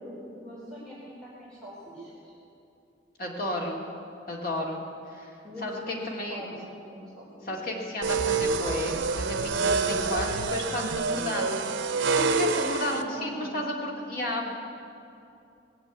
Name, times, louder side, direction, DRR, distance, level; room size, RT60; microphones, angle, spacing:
voice 1, 0.0-2.4 5.4-6.0 6.3-6.7 6.9-7.5 9.9-10.1 12.9-13.6, equal, 5° left, -9 dB, 4.4 m, -42 dB
voice 2, 3.2-3.8 4.3-4.8 5.1-5.3 5.6-6.4 7.4-11.6 12.1-14.5, left 1 dB, 50° left, -1 dB, 2.4 m, -32 dB
sound 1, 8.0-13.0, right 4 dB, 80° right, 0.8 m, -27 dB
19.5 x 8.0 x 8.2 m, 2.7 s
head